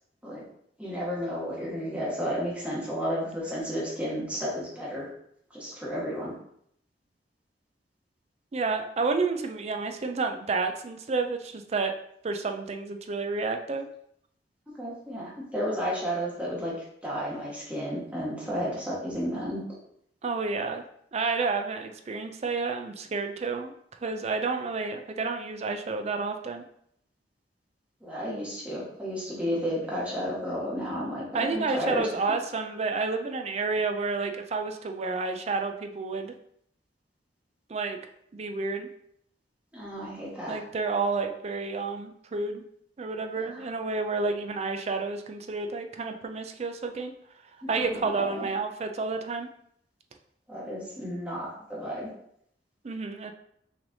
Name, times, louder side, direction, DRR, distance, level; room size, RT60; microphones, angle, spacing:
voice 1, 0.8-5.1 5.5-6.3 14.7-16.7 17.0-19.6 28.0-32.2 39.7-40.6 43.4-43.6 47.7-48.5 50.5-52.1, equal, 5° right, -6 dB, 1.4 m, -32 dB
voice 2, 8.5-11.9 12.2-13.8 20.2-20.8 21.1-23.7 24.0-26.6 31.3-36.3 37.7-38.0 38.3-38.9 40.5-42.6 43.0-47.1 47.7-49.5 52.8-53.3, right 4 dB, 35° right, 5 dB, 0.4 m, -30 dB
6.0 x 3.2 x 2.7 m, 0.71 s
head